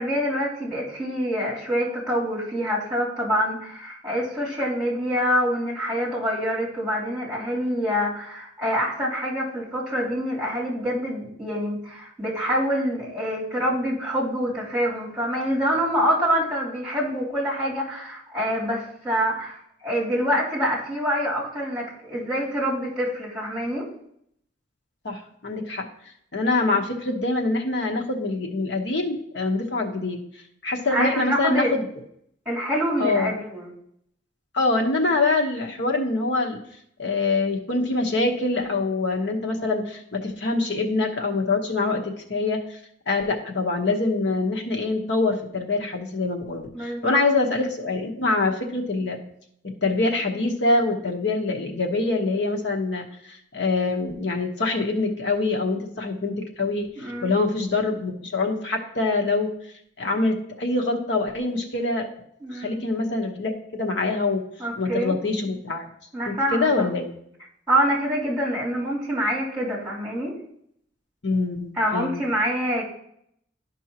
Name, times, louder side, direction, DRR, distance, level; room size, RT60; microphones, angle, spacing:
voice 1, 0.0-23.8 30.9-31.7 32.4-33.7 46.7-47.2 57.0-57.3 62.4-62.8 64.6-65.1 66.1-66.9 67.7-70.3 71.7-72.8, equal, 5° right, -7 dB, 3.2 m, -26 dB
voice 2, 25.0-25.8 26.3-30.2 30.6-31.8 33.0-33.3 34.5-36.6 37.0-42.8 43.1-49.2 49.8-59.5 60.0-62.1 62.5-64.4 64.8-65.9 66.3-67.1 71.2-72.2, left 3 dB, 75° left, 2 dB, 1.1 m, -25 dB
11.5 x 5.4 x 2.9 m, 0.71 s
head